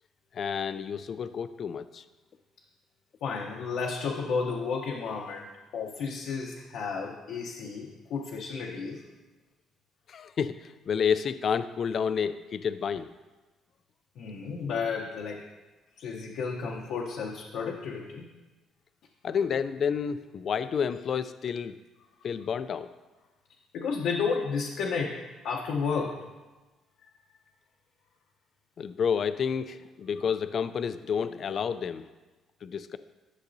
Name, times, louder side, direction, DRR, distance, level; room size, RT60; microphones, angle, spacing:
voice 1, 0.3-2.0 10.1-13.1 19.2-21.7 22.2-22.9 28.8-32.0 32.6-33.0, left 7 dB, 50° left, 12 dB, 0.3 m, -30 dB
voice 2, 3.2-9.0 14.2-15.4 16.0-18.3 23.7-26.2, left 5 dB, 75° left, -2 dB, 0.8 m, -32 dB
11.5 x 6.5 x 2.6 m, 1.2 s
cardioid pair, 110°, 0 cm